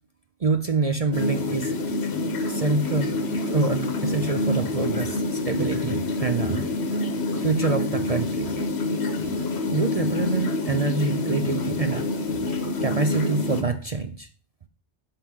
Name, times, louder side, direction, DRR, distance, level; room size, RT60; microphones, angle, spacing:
voice 1, 0.4-1.7 2.5-3.1 3.5-6.7 7.4-8.5 9.7-12.0 12.8-14.3, right 3 dB, 40° right, 8 dB, 0.6 m, -26 dB
sound 1, 1.1-13.6, left 2 dB, 70° left, 1.5 m, -27 dB
11.0 x 5.8 x 3.6 m, 0.43 s
omnidirectional pair, 1.1 m